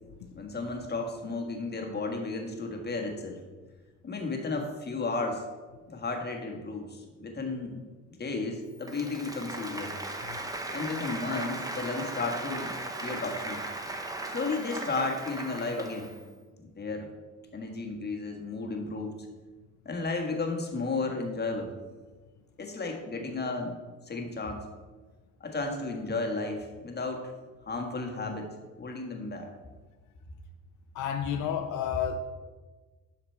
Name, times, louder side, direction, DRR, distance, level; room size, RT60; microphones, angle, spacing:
voice 1, 0.3-3.4 4.0-5.5 5.9-7.8 8.1-10.2 10.7-13.6 14.3-16.1 16.8-17.1 17.5-19.3 19.8-21.8 22.6-23.7 24.0-24.7 25.4-27.3 27.7-28.5 28.8-29.5, left 3 dB, 35° left, 2 dB, 1.5 m, -33 dB
Applause, 8.8-16.2, right 2 dB, 10° right, 0.9 m, -37 dB
voice 2, 30.9-32.2, left 8 dB, 75° left, 6 dB, 0.6 m, -30 dB
7.9 x 5.8 x 4.5 m, 1.3 s
cardioid pair, 90°, 30 cm